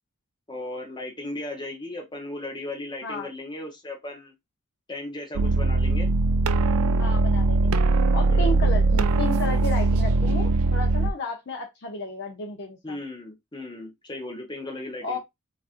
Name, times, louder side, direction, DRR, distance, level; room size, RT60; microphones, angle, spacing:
voice 1, 0.5-4.3 4.9-6.1 8.3-8.8 12.8-15.2, left 2 dB, 20° left, 1.0 m, -36 dB
sound 1, 5.4-11.1, right 3 dB, 85° right, 0.4 m, -21 dB
voice 2, 7.0-13.0 15.0-15.2, left 2 dB, 55° left, 0.6 m, -33 dB
4.0 x 2.5 x 2.4 m
head